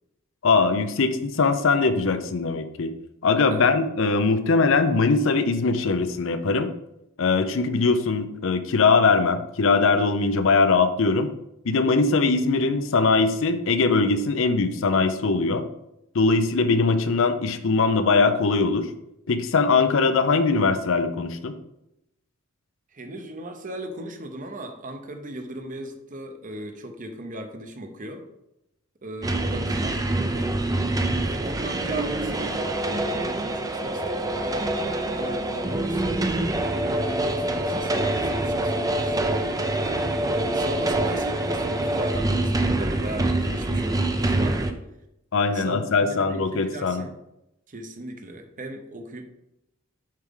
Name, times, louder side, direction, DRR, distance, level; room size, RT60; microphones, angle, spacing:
voice 1, 0.4-2.9 3.2-6.7 7.2-11.3 11.6-15.7 16.1-18.9 19.3-21.6 45.3-47.0, left 4 dB, 70° left, 10 dB, 0.6 m, -21 dB
voice 2, 22.9-28.3 29.0-30.6 31.2-34.8 35.0-36.2 36.6-39.5 40.3-44.6 45.4-47.2 47.7-49.2, right 1 dB, 40° right, 6 dB, 0.8 m, -37 dB
sound 1, 29.2-44.7, right 1 dB, 15° right, 0.5 m, -25 dB
7.4 x 4.7 x 3.8 m, 0.85 s
head